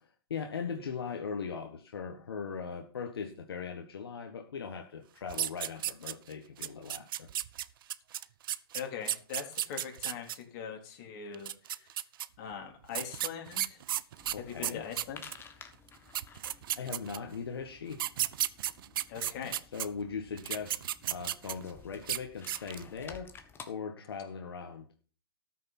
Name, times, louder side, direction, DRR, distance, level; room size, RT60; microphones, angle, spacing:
voice 1, 0.3-7.3 14.3-14.8 15.6-15.7 16.7-18.0 19.7-20.8 21.1-23.3 23.7-25.0, left 6 dB, 80° left, 3 dB, 1.8 m, -39 dB
sound 1, 5.3-6.3 6.6-10.4 11.3-12.3 12.9-15.4 15.9-16.0 16.1-17.4 17.9-19.9 20.4-21.7 22.0-22.2 22.5-22.9, right 12 dB, 65° right, 0.6 m, -34 dB
voice 2, 8.7-11.9 12.4-13.8 14.4-15.2 19.1-19.6, left 7 dB, 50° left, 2 dB, 3.8 m, -41 dB
sound 2, 14.1-23.7, left 6 dB, 20° left, 1.5 m, -54 dB
13.5 x 6.5 x 6.0 m, 0.40 s
hypercardioid pair, 130°, 13 cm